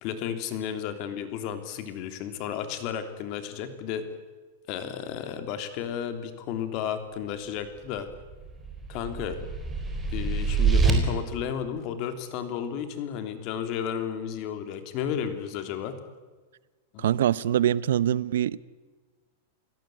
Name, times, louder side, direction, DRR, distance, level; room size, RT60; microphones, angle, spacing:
voice 1, 0.0-4.0 4.7-8.1 8.9-9.4 10.1-16.0 16.9-17.0, left 8 dB, 40° left, 9 dB, 3.2 m, -33 dB
sound 1, 8.1-10.9, right 5 dB, 10° right, 4.1 m, -26 dB
voice 2, 17.0-18.6, right 11 dB, 80° right, 20 dB, 0.8 m, -24 dB
29.5 x 17.5 x 9.2 m, 1.3 s
supercardioid pair, 155°, 0 cm